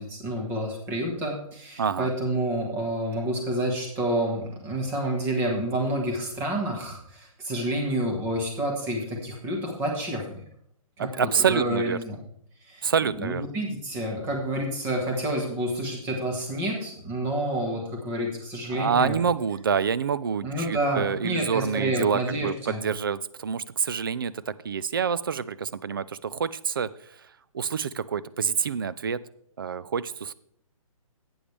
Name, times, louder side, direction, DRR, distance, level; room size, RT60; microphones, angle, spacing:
voice 1, 0.0-10.4 11.0-12.2 12.6-12.9 13.2-19.2 20.4-22.8, right 1 dB, 10° right, 1 dB, 1.4 m, -29 dB
voice 2, 1.8-2.1 11.0-12.0 12.8-13.5 18.7-27.3 27.5-29.2 29.6-30.3, right 6 dB, 40° right, 17 dB, 0.4 m, -27 dB
11.0 x 8.8 x 3.3 m, 0.67 s
hypercardioid pair, 170°, 18 cm